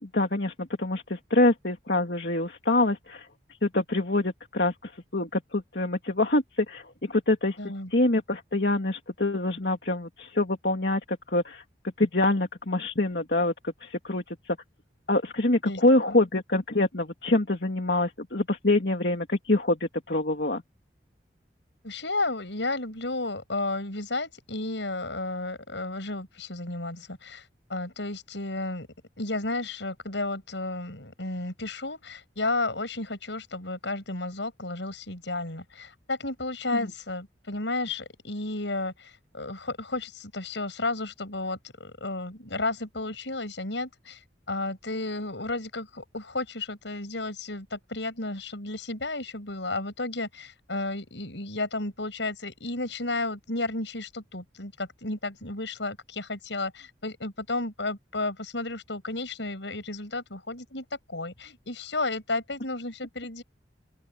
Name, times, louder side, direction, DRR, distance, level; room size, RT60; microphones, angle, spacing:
voice 1, 0.0-3.3 3.6-7.6 7.9-11.6 12.0-13.5 13.8-14.6 15.1-19.8 20.1-20.6, left 2 dB, 65° left, 2.4 m, -25 dB
voice 2, 7.6-7.9 15.6-15.8 16.1-16.2 21.8-28.9 29.2-44.2 44.5-63.4, left 2 dB, 90° left, 7.2 m, -33 dB
open air
head